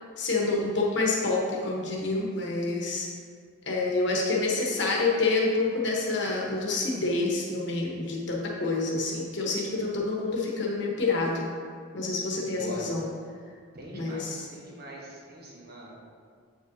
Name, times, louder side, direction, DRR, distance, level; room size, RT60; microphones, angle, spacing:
voice 1, 0.2-3.1 3.7-11.5 11.9-13.1 13.9-14.5, left 3 dB, 60° left, -2 dB, 1.2 m, -27 dB
voice 2, 12.4-12.9 13.7-16.0, equal, 50° right, -3 dB, 1.2 m, -42 dB
8.1 x 5.5 x 2.8 m, 2.1 s
head